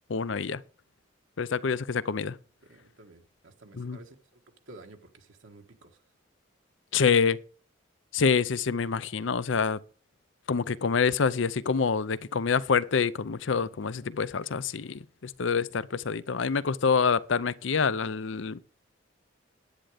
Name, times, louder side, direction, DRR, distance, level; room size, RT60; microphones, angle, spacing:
voice 1, 0.1-0.6 1.4-2.4 3.7-4.0 6.9-7.4 8.1-9.8 10.5-18.6, left 5 dB, 70° left, 0.6 m, -26 dB
voice 2, 2.7-4.4 4.7-6.0, right 2 dB, 75° right, 1.4 m, -52 dB
10.0 x 8.9 x 5.0 m
head